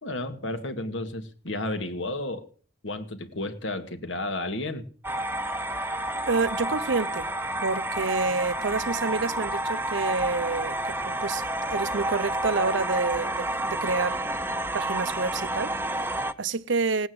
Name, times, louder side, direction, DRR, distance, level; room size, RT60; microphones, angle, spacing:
voice 1, 0.0-2.5 2.8-4.8, left 2 dB, 80° left, 2.3 m, -32 dB
sound 1, 5.0-16.3, right 1 dB, 10° right, 0.8 m, -30 dB
voice 2, 6.3-7.3 7.6-14.2 14.7-17.1, right 4 dB, 75° right, 0.8 m, -28 dB
18.5 x 9.2 x 8.0 m
head